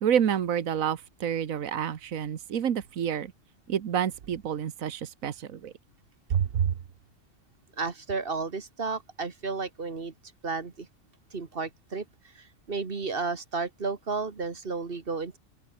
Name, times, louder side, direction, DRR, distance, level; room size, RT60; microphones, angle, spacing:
voice 1, 0.0-3.3 3.7-5.7 6.3-6.7, right 8 dB, 80° right, 1.5 m, -28 dB
voice 2, 7.7-10.1 10.4-10.9 11.3-15.4, right 4 dB, 45° right, 1.7 m, -33 dB
open air
omnidirectional pair, 1.4 m